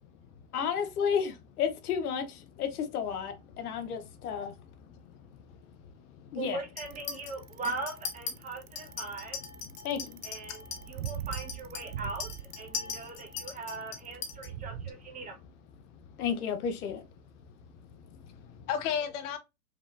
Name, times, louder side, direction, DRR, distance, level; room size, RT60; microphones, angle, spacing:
voice 1, 0.5-4.5 6.3-6.6 9.8-10.2 16.2-17.0, left 7 dB, 85° left, 1.1 m, -32 dB
voice 2, 3.5-6.4 7.5-7.6 8.4-11.3 11.8-12.0 12.6-13.8 14.3-15.4 15.8-16.2 17.3-19.4, left 8 dB, 55° left, 0.9 m, -42 dB
voice 3, 6.4-9.4 10.2-10.6 10.9-12.3 12.6-15.4, right 3 dB, 20° right, 1.4 m, -39 dB
Chink clink, 6.8-7.3 7.6-8.3 8.8-14.5, left 6 dB, 20° left, 0.4 m, -40 dB
Bicycle, 6.8-14.9, right 11 dB, 85° right, 0.5 m, -41 dB
5.0 x 2.9 x 2.6 m
supercardioid pair, 135°, 43 cm